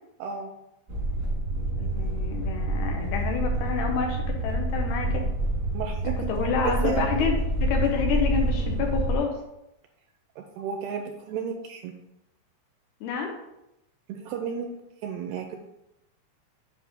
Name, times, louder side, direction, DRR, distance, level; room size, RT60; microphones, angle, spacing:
voice 1, 0.2-0.5 5.7-6.2 6.6-7.1 10.4-11.9 14.1-14.7 15.0-15.6, right 7 dB, 85° right, 4 dB, 2.4 m, -32 dB
sound 1, 0.9-9.1, right 1 dB, 45° right, 0.9 m, -27 dB
voice 2, 1.8-5.3 6.3-9.3 13.0-13.4, left 6 dB, 75° left, 2 dB, 2.5 m, -28 dB
9.7 x 5.3 x 3.6 m, 0.89 s
omnidirectional pair, 5.1 m